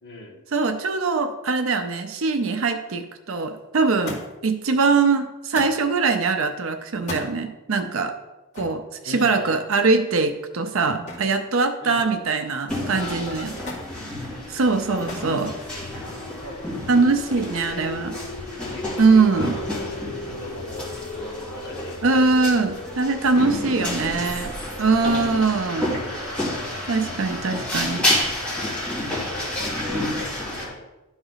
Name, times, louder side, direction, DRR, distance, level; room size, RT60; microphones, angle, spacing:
voice 1, 0.0-0.4 9.0-9.6 11.8-12.1 12.9-13.7 16.4-16.7 17.1-17.8 18.6-20.0 20.3-22.2 23.6-24.2 25.0-25.4 29.1-30.9, left 1 dB, 50° left, -1 dB, 1.5 m, -40 dB
voice 2, 0.5-8.1 8.5-13.5 14.5-15.6 16.9-18.1 19.0-19.5 22.0-24.5 24.8-26.0 26.9-28.1, right 4 dB, 60° right, 8 dB, 0.5 m, -22 dB
Thump thud, 4.1-4.5 5.5-5.9 7.0-7.3 8.5-8.8 11.1-11.4 11.7-12.3 13.7-13.9 15.1-15.4 16.3-16.8 17.8-17.9, left 2 dB, 35° left, 2.2 m, -36 dB
sound 1, 11.5-30.0, left 2 dB, 80° left, 0.7 m, -40 dB
sound 2, 12.7-30.7, left 1 dB, 5° left, 2.3 m, -30 dB
12.0 x 3.9 x 4.0 m, 1.1 s
head